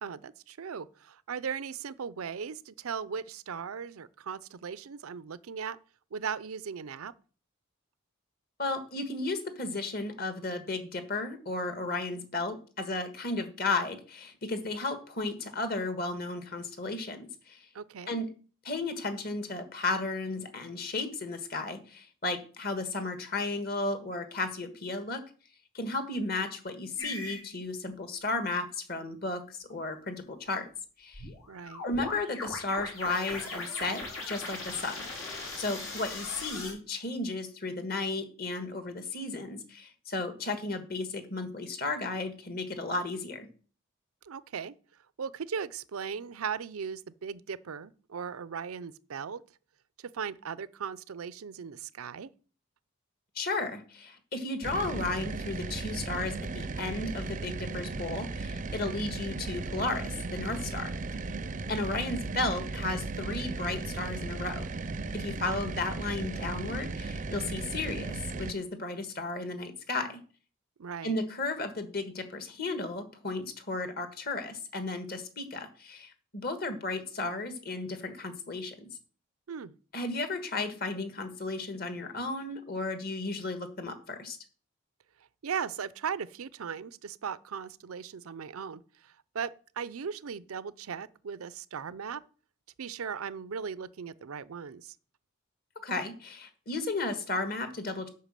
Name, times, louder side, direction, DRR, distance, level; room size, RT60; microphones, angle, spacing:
voice 1, 0.0-5.8 6.1-7.1 17.7-18.2 31.5-31.9 44.2-44.8 45.2-49.4 50.0-52.3 70.8-71.2 79.5-79.7 85.4-92.2 92.8-95.0, right 6 dB, 90° right, 0.5 m, -38 dB
voice 2, 8.6-17.7 18.1-18.3 18.6-25.2 25.7-30.7 31.0-31.3 31.8-43.5 53.3-60.9 61.7-64.7 65.1-70.2 71.0-78.9 79.9-84.4 95.8-98.1, left 2 dB, 45° left, 1.5 m, -34 dB
sound 1, 27.0-27.4 31.1-36.7, left 3 dB, 90° left, 4.8 m, -39 dB
sound 2, 54.6-68.5, right 3 dB, 35° right, 0.5 m, -36 dB
8.3 x 5.8 x 7.5 m
head